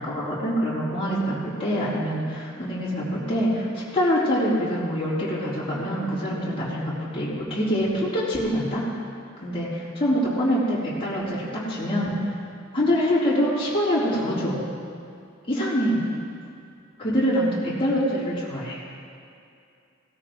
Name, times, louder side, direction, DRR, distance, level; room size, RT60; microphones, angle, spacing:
voice 1, 0.0-8.9 9.4-12.4 12.7-14.6 15.5-16.0 17.0-18.8, equal, 30° left, -9 dB, 3.9 m, -25 dB
18.5 x 13.0 x 3.2 m, 2.5 s
head